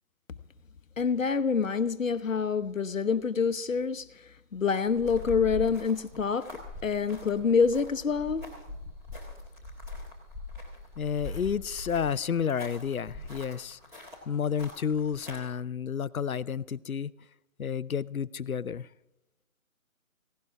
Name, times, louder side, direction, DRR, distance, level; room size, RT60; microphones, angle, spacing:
voice 1, 1.0-4.2 4.5-6.5 6.8-8.5, left 5 dB, 70° left, 1.0 m, -27 dB
sound 1, 4.9-15.4, left 2 dB, 5° right, 1.5 m, -42 dB
voice 2, 11.0-13.8 14.3-17.1 17.6-18.9, left 7 dB, 90° left, 0.7 m, -31 dB
17.0 x 16.5 x 3.5 m
figure-of-eight pair, 155°, 41 cm